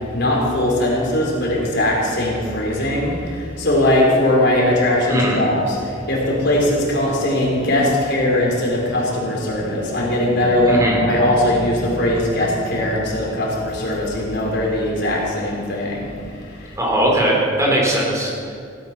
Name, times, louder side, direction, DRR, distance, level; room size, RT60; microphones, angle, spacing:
voice 1, 0.1-16.1 16.6-16.7 17.0-17.1, left 1 dB, 60° left, -2 dB, 4.5 m, -20 dB
voice 2, 10.7-11.0 16.8-18.5, right 1 dB, 15° right, -2 dB, 4.0 m, -19 dB
17.0 x 13.0 x 6.1 m, 2.3 s
head